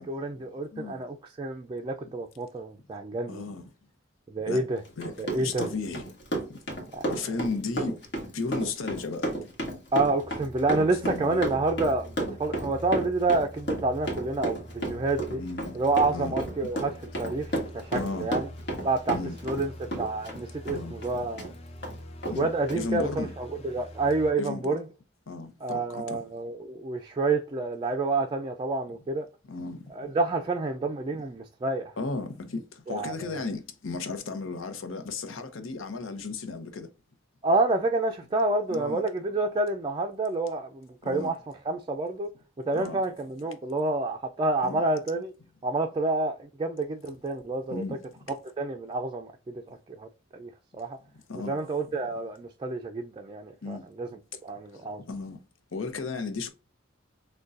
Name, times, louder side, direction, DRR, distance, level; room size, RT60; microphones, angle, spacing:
voice 1, 0.0-3.5 4.3-4.8 5.2-5.7 6.9-7.0 9.9-15.4 15.7-16.9 17.2-18.4 18.8-19.2 19.4-19.7 20.0-21.5 22.4-24.8 25.6-29.3 30.0-31.9 32.9-33.4 37.4-41.4 41.7-42.3 42.7-45.3 45.6-47.8 48.6-51.0 51.5-54.1 54.4-55.0, right 2 dB, 25° right, 0.3 m, -28 dB
voice 2, 0.7-1.0 3.3-3.7 4.5-4.6 5.0-6.2 6.4-6.6 7.1-8.0 8.3-9.3 10.7-11.5 12.2-12.4 15.4-15.7 16.1-16.3 17.9-18.3 19.1-19.4 20.7-21.0 22.3-22.5 22.7-23.3 24.4-24.8 25.3-26.2 29.4-30.1 32.0-36.9 38.7-39.0 41.0-41.3 42.7-43.0 44.6-44.8 47.7-48.2 51.3-51.6 53.6-53.8 55.0-55.4 55.7-56.5, left 3 dB, 90° left, 0.7 m, -35 dB
Run, 4.8-19.7 19.9-21.5 21.8-21.9 22.2-22.4 22.7-22.8, right 1 dB, 60° left, 1.4 m, -32 dB
sound 1, 10.2-24.3, equal, 30° left, 0.5 m, -44 dB
6.3 x 2.2 x 2.5 m
head